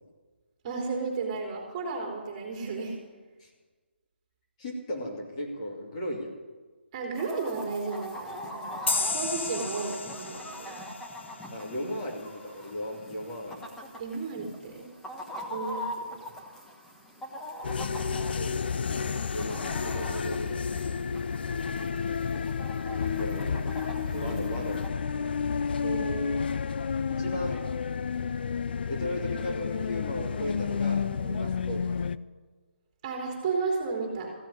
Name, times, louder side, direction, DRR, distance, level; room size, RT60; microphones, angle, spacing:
voice 1, 0.6-3.0 6.9-8.8 9.1-10.7 14.0-14.9 15.5-16.1 21.7-21.8 24.1-24.7 25.8-26.5 31.2-31.4 33.0-34.3, right 4 dB, 25° right, 0 dB, 3.5 m, -33 dB
voice 2, 4.6-6.3 11.5-13.6 17.9-20.6 22.1-22.3 23.2-23.6 24.1-25.1 27.1-27.6 28.9-31.0 31.4-31.9, left 1 dB, 30° left, -1 dB, 2.7 m, -36 dB
Chicken rooster, 7.1-24.9, equal, 5° left, 1.2 m, -42 dB
sound 1, 8.9-12.2, left 3 dB, 85° left, 1.2 m, -33 dB
sound 2, 17.6-32.2, left 6 dB, 60° left, 0.4 m, -31 dB
15.0 x 7.7 x 9.7 m, 1.3 s
hypercardioid pair, 160°, 6 cm